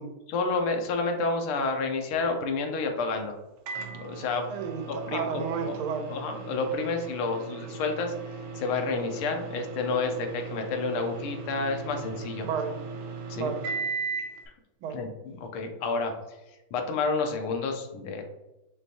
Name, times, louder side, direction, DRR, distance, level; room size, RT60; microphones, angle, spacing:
voice 1, 0.3-3.4 3.9-4.5 4.9-5.8 6.1-12.5 13.3-13.5 14.9-16.4 16.7-18.2, left 4 dB, 85° left, 4 dB, 1.6 m, -30 dB
Microwave oven, 3.7-14.4, right 4 dB, 70° right, 1.2 m, -38 dB
voice 2, 4.5-6.1 12.4-12.8 13.3-13.6 14.8-15.0, right 7 dB, 85° right, 6 dB, 1.5 m, -32 dB
4.8 x 3.4 x 2.7 m, 0.99 s
omnidirectional pair, 2.3 m